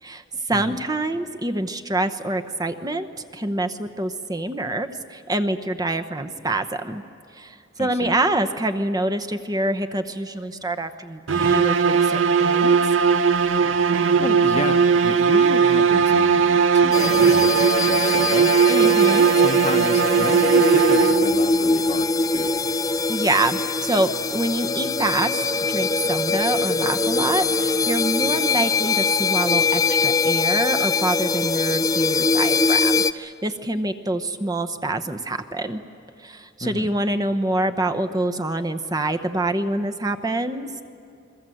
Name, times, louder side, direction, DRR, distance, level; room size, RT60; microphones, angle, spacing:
voice 1, 0.0-7.0 7.3-12.8 18.7-19.3 23.1-35.8 36.2-40.7, right 2 dB, 20° right, 7 dB, 0.9 m, -26 dB
voice 2, 7.8-8.1 13.6-18.5 18.8-18.9 19.3-22.6 36.6-36.9, left 2 dB, 35° left, 8 dB, 1.0 m, -32 dB
sound 1, 11.3-21.5, right 6 dB, 65° right, 0.7 m, -18 dB
sound 2, 16.9-33.1, left 4 dB, 15° left, 0.5 m, -22 dB
28.5 x 22.5 x 7.8 m, 2.6 s
head